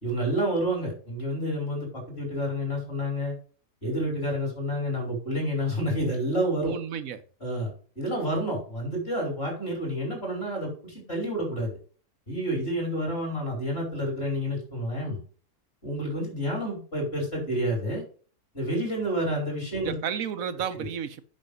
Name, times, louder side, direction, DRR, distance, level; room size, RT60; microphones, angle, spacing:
voice 1, 0.0-3.3 3.8-6.7 7.4-11.7 12.3-15.2 15.8-18.0 18.5-20.0 20.8-20.9, equal, 45° left, 5.2 m, -29 dB
voice 2, 6.6-7.2 19.8-21.2, right 8 dB, 80° right, 1.3 m, -32 dB
8.8 x 6.3 x 5.2 m
omnidirectional pair, 1.5 m